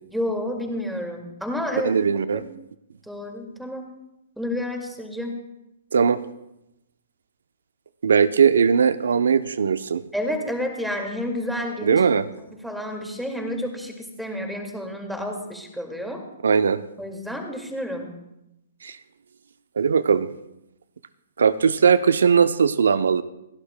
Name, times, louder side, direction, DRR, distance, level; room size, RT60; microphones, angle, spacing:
voice 1, 0.1-1.9 2.3-2.5 3.1-3.9 4.4-5.4 10.1-12.0 12.6-16.2 17.0-18.1, left 1 dB, ahead, 3 dB, 2.1 m, -30 dB
voice 2, 1.8-2.4 5.9-6.2 8.0-10.0 11.8-12.2 16.4-16.8 18.8-19.0 19.8-20.3 21.4-23.2, right 6 dB, 75° right, 14 dB, 0.6 m, -19 dB
28.5 x 11.5 x 2.2 m, 0.87 s
hypercardioid pair, 130°, 0 cm